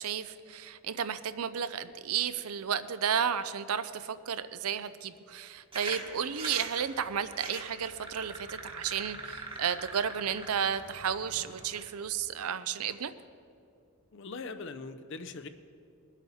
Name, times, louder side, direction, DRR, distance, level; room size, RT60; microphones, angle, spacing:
voice 1, 0.0-13.1, right 8 dB, 90° right, 13 dB, 0.6 m, -33 dB
sound 1, 5.7-11.8, right 3 dB, 25° right, 1.2 m, -43 dB
voice 2, 14.1-15.5, left 4 dB, 55° left, 10 dB, 0.6 m, -41 dB
21.0 x 8.2 x 4.2 m, 2.5 s
head